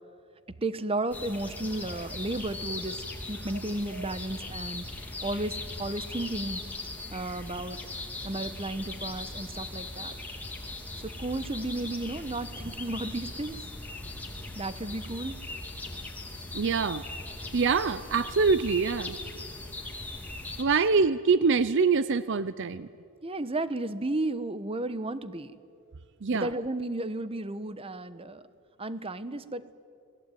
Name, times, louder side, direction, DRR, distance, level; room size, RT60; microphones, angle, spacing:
voice 1, 0.5-4.8 5.2-6.6 7.1-7.8 8.2-10.1 11.0-13.6 14.5-15.4 23.2-25.6 26.3-28.4 28.8-29.7, right 2 dB, 25° right, 14 dB, 1.0 m, -33 dB
sound 1, 1.1-20.6, left 2 dB, 5° left, 2.9 m, -39 dB
voice 2, 16.5-17.0 17.5-19.2 20.6-22.9 26.2-26.5, right 5 dB, 55° right, 15 dB, 0.6 m, -25 dB
29.0 x 20.5 x 9.2 m, 2.3 s
head